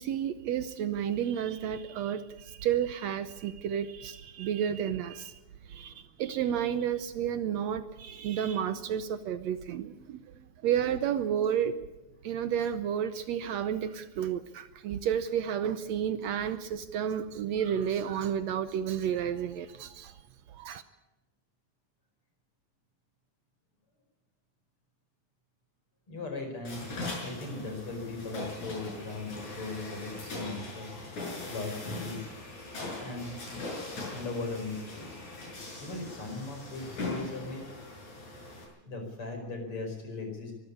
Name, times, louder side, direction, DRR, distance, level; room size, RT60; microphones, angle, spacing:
voice 1, 0.0-5.4 5.7-10.2 10.6-11.8 12.2-20.2 20.5-20.8, right 9 dB, 70° right, 12 dB, 2.0 m, -31 dB
voice 2, 26.1-26.8 27.2-31.0 31.5-32.3 33.0-33.3 34.1-35.2 35.8-37.6 38.8-40.5, left 3 dB, 45° left, 4 dB, 5.8 m, -38 dB
sound 1, 26.6-38.6, left 2 dB, 70° left, 7.9 m, -40 dB
23.0 x 14.5 x 8.6 m, 1.0 s
omnidirectional pair, 3.4 m